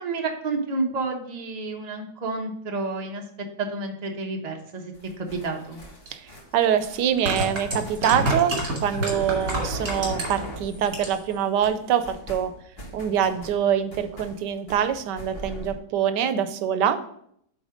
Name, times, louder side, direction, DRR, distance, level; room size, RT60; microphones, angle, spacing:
voice 1, 0.0-3.2 3.6-5.8, right 3 dB, 30° right, 2 dB, 0.9 m, -30 dB
sound 1, 4.9-11.4 11.6-15.7, right 1 dB, 35° left, 1.7 m, -40 dB
sound 2, 6.1-6.2 7.0-10.5 10.8-11.3 11.6-11.7, right 1 dB, 70° right, 2.7 m, -28 dB
voice 2, 6.1-12.5 12.9-17.1, right 9 dB, 85° right, 11 dB, 1.2 m, -24 dB
8.4 x 3.9 x 5.0 m, 0.69 s
omnidirectional pair, 1.8 m